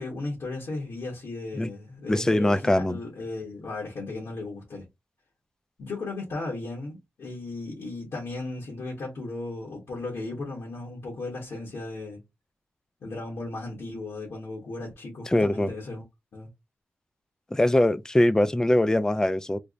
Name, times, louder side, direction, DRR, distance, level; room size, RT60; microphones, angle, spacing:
voice 1, 0.0-4.9 5.8-12.2 13.0-16.0 16.3-16.5, left 2 dB, 80° left, 1.4 m, -36 dB
voice 2, 2.1-3.0 15.3-15.7 17.5-19.6, left 1 dB, 15° left, 0.4 m, -22 dB
3.4 x 2.1 x 3.7 m
cardioid pair, 70°, 5 cm